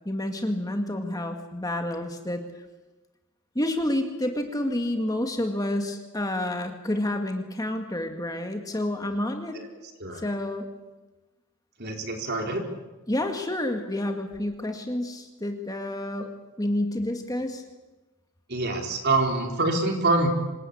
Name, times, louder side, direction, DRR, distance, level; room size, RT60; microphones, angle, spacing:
voice 1, 0.1-2.4 3.6-9.6 10.2-10.7 13.1-16.3 16.6-17.6, left 1 dB, 15° left, 5 dB, 1.9 m, -29 dB
voice 2, 11.8-12.6 18.5-20.3, right 2 dB, 50° right, 3 dB, 4.1 m, -25 dB
26.5 x 19.5 x 8.6 m, 1.1 s
head